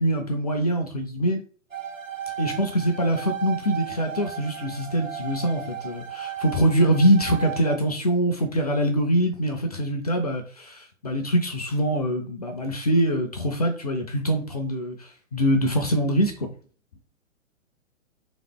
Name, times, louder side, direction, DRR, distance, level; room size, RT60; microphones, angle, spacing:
voice 1, 0.0-1.4 2.4-16.5, right 1 dB, 30° left, 4 dB, 0.4 m, -24 dB
sound 1, 1.7-7.8, right 9 dB, 75° right, 0.9 m, -35 dB
3.3 x 2.9 x 3.6 m, 0.41 s
figure-of-eight pair, 120°, 40 cm